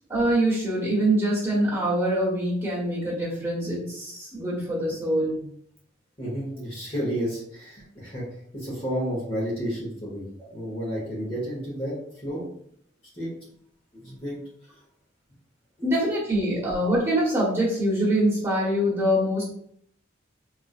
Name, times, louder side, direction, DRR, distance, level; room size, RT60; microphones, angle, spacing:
voice 1, 0.1-5.4 15.8-19.5, right 1 dB, 15° right, -7 dB, 1.3 m, -24 dB
voice 2, 6.2-8.2 8.5-12.5 13.1-13.3 13.9-14.4 15.8-15.9, equal, 30° left, -5 dB, 0.9 m, -31 dB
4.0 x 2.4 x 2.4 m, 0.67 s
head